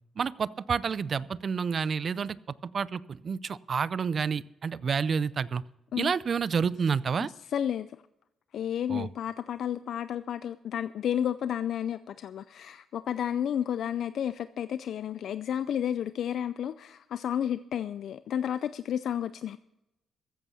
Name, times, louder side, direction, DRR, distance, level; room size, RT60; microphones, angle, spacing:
voice 1, 0.2-2.4 2.6-5.6 6.0-7.3 8.9-9.1, right 6 dB, 50° right, 0.4 m, -29 dB
voice 2, 7.5-7.9 8.5-19.6, left 9 dB, 70° left, 0.4 m, -31 dB
14.5 x 8.2 x 7.0 m
cardioid pair, 90°, 0 cm